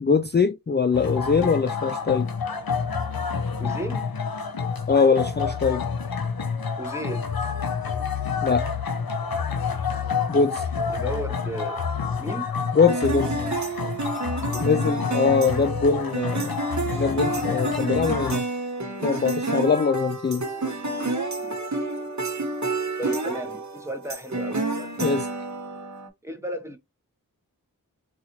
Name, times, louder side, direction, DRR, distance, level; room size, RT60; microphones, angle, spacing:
voice 1, 0.0-2.3 4.9-5.8 8.4-8.7 10.3-10.6 12.7-13.3 14.6-16.5 16.9-18.4 19.0-20.4 25.0-25.3, left 5 dB, 30° left, 0.4 m, -22 dB
sound 1, 0.9-18.4, left 5 dB, 85° left, 0.7 m, -28 dB
voice 2, 3.6-4.1 6.8-7.3 10.9-11.8 12.2-12.5 14.5-14.9 21.4-21.6 23.0-24.9 26.2-26.8, right 1 dB, 10° right, 0.9 m, -34 dB
sound 2, 12.9-26.1, right 3 dB, 55° right, 1.1 m, -29 dB
4.0 x 2.4 x 3.0 m
wide cardioid pair, 50°, 35 cm